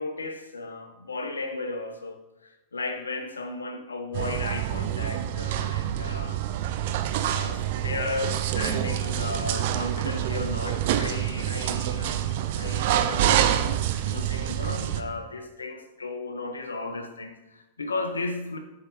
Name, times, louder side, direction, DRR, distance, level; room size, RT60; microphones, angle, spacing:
voice 1, 0.0-6.4 7.2-18.6, left 3 dB, 75° left, 0.9 m, -35 dB
sound 1, 4.1-15.0, right 11 dB, 50° right, 0.5 m, -27 dB
7.4 x 4.7 x 4.9 m
figure-of-eight pair, 90°, 0 cm